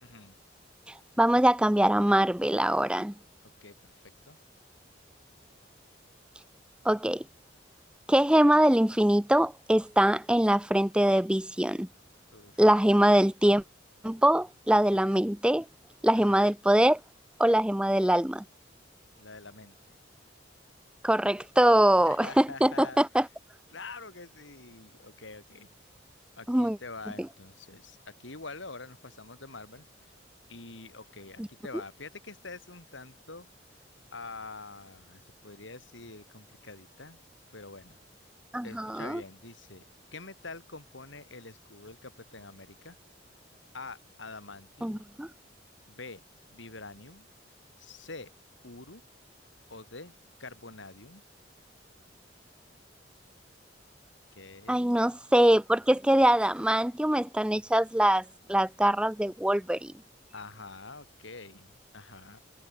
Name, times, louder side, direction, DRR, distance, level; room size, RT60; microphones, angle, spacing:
voice 1, 0.0-0.4 3.6-4.4 12.3-12.6 14.9-15.1 16.1-16.5 19.2-20.0 22.1-23.0 23.7-25.7 26.4-30.1 30.5-33.5 34.1-37.2 37.5-38.0 38.6-39.8 40.1-43.0 43.7-45.0 45.9-46.2 46.5-47.3 47.8-48.3 48.6-49.0 49.7-50.1 50.4-51.2 54.4-55.0 60.3-62.4, left 3 dB, 80° left, 3.5 m, -46 dB
voice 2, 1.2-3.1 6.8-7.2 8.1-11.9 12.6-13.6 14.0-15.6 16.0-17.0 17.4-18.4 21.0-23.2 26.5-26.8 38.5-39.2 44.8-45.3 54.7-58.2 58.5-59.9, right 1 dB, 5° right, 0.6 m, -23 dB
head